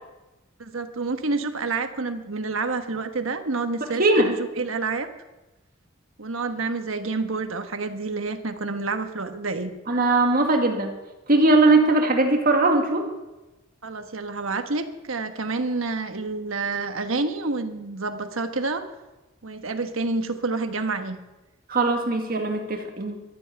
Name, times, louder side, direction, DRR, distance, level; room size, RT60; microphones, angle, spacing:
voice 1, 0.6-5.1 6.2-9.7 13.8-18.8 19.4-21.2, right 3 dB, 90° right, 8 dB, 1.3 m, -28 dB
voice 2, 4.0-4.3 9.9-10.9 11.3-13.1 21.7-23.2, right 2 dB, 45° right, 4 dB, 2.0 m, -20 dB
13.0 x 8.2 x 9.8 m, 1.1 s
head